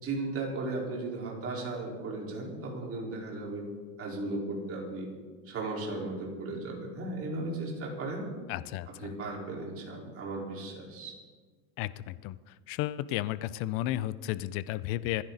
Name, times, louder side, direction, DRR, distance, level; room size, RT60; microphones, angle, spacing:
voice 1, 0.0-3.7 4.0-5.1 5.5-8.3 9.0-11.1, right 2 dB, 30° right, -2 dB, 4.2 m, -36 dB
voice 2, 8.5-9.1 11.8-12.4 12.7-15.2, left 14 dB, 30° left, 17 dB, 0.4 m, -33 dB
26.5 x 10.5 x 4.0 m, 1.5 s
supercardioid pair, 140°, 46 cm